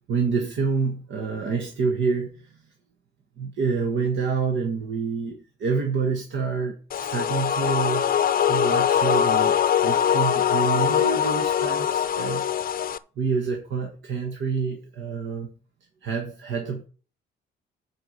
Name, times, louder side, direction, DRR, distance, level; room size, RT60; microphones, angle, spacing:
voice 1, 0.1-2.6 3.4-12.4 13.2-15.5 16.0-16.9, right 5 dB, 70° right, 1.7 m, -27 dB
sound 1, 6.9-13.0, left 9 dB, 45° left, 0.6 m, -22 dB
7.9 x 5.0 x 7.5 m
cardioid pair, 90°, 20 cm